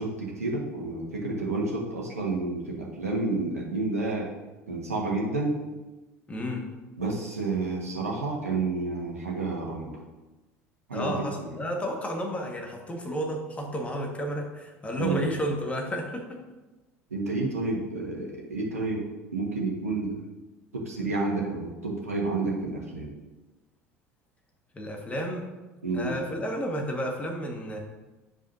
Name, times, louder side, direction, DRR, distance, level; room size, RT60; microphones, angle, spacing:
voice 1, 0.0-4.3 4.7-5.6 7.0-9.9 10.9-11.5 15.0-15.3 17.1-19.1 19.3-20.1 20.7-23.1 25.8-26.1, right 3 dB, 80° right, -3 dB, 1.4 m, -30 dB
voice 2, 6.3-6.6 10.9-16.4 24.7-25.5 25.9-27.8, equal, 15° left, 1 dB, 1.6 m, -31 dB
10.5 x 5.1 x 2.7 m, 1.1 s
figure-of-eight pair, 65°, 8 cm